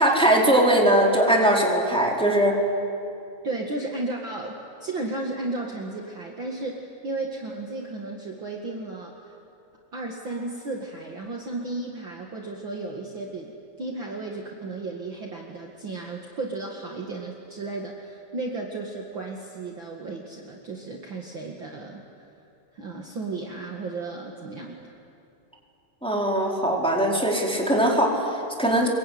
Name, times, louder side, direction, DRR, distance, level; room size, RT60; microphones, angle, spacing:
voice 1, 0.0-2.6 26.0-28.9, right 1 dB, ahead, -2 dB, 4.2 m, -21 dB
voice 2, 3.4-9.4 9.9-22.0 22.7-24.9, right 2 dB, 45° right, -1 dB, 2.5 m, -34 dB
26.5 x 23.0 x 9.5 m, 2.6 s
omnidirectional pair, 3.3 m